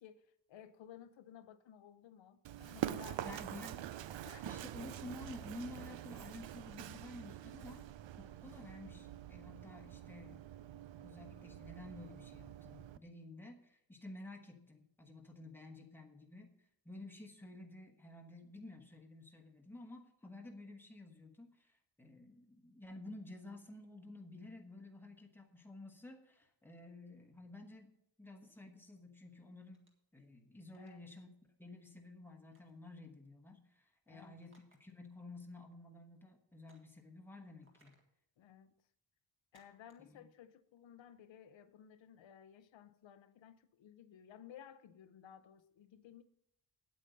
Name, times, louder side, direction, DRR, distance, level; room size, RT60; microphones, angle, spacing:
voice 1, 0.0-3.9 4.2-4.5 30.8-31.0 34.1-34.4 38.4-38.7 39.5-46.2, left 9 dB, 85° left, 0.7 m, -57 dB
Run, 2.4-13.0, right 12 dB, 80° right, 0.6 m, -46 dB
voice 2, 3.2-3.8 4.4-7.8 8.2-27.9 28.2-31.3 31.6-38.0 40.0-40.3, left 2 dB, 5° left, 1.1 m, -52 dB
sound 1, 29.7-30.1 30.6-31.0 32.5-32.8 34.4-35.1 35.4-35.5 36.7-37.0 37.6-38.1 39.5-40.1, right 1 dB, 25° right, 1.8 m, -71 dB
9.0 x 8.6 x 5.2 m
wide cardioid pair, 175°, 44 cm